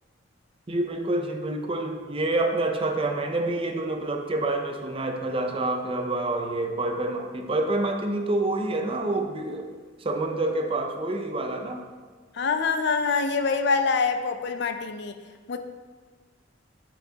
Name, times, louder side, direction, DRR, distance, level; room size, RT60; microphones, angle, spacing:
voice 1, 0.7-9.7 10.0-11.8, right 2 dB, 30° right, 4 dB, 0.6 m, -27 dB
voice 2, 12.4-15.1 15.5-15.6, left 4 dB, 60° left, 8 dB, 0.5 m, -25 dB
8.4 x 5.6 x 2.8 m, 1.4 s
head